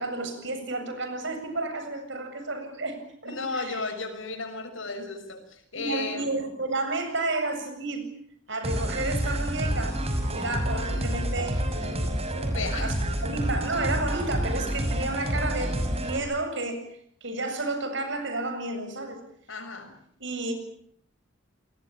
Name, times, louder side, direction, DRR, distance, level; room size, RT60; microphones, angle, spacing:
voice 1, 0.0-3.9 5.7-8.0 8.5-10.0 10.3-12.1 12.8-12.9 13.2-16.9 17.2-19.2 20.2-20.7, right 2 dB, 65° right, 7 dB, 7.8 m, -31 dB
voice 2, 3.2-6.3 12.5-12.9 19.5-20.0, left 3 dB, 90° left, 8 dB, 6.3 m, -34 dB
sound 1, 8.6-16.2, equal, 30° right, 6.0 m, -28 dB
29.5 x 20.5 x 8.8 m, 0.65 s
head